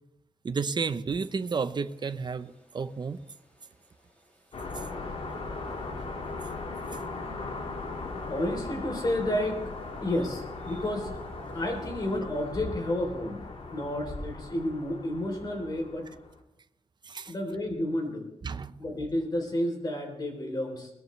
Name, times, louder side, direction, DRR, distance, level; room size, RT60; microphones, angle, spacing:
voice 1, 0.4-3.2 17.1-17.3 18.4-18.8, right 5 dB, 40° right, 12 dB, 0.8 m, -32 dB
sound 1, 1.1-14.8, left 1 dB, 10° left, 6.5 m, -51 dB
sound 2, 4.5-16.4, left 3 dB, 60° left, 3.6 m, -39 dB
voice 2, 8.3-9.6 10.0-11.1 11.5-13.4 13.7-16.1 17.3-18.3 18.8-20.9, left 1 dB, 35° left, 2 dB, 3.5 m, -31 dB
21.5 x 20.0 x 3.3 m, 0.85 s
wide cardioid pair, 170°, 12 cm